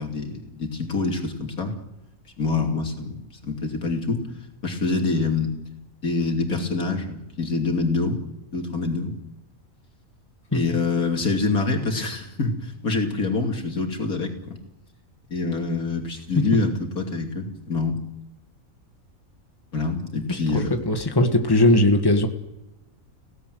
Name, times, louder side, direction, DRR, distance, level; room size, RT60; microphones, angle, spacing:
voice 1, 0.0-1.7 2.4-3.2 3.4-4.2 4.6-5.5 6.0-8.2 8.5-9.1 10.5-14.6 15.3-18.0 19.7-20.8, left 3 dB, 85° left, 3 dB, 3.3 m, -25 dB
voice 2, 20.3-22.3, left 1 dB, 15° left, 5 dB, 1.8 m, -19 dB
25.5 x 17.0 x 9.4 m, 0.99 s
omnidirectional pair, 1.5 m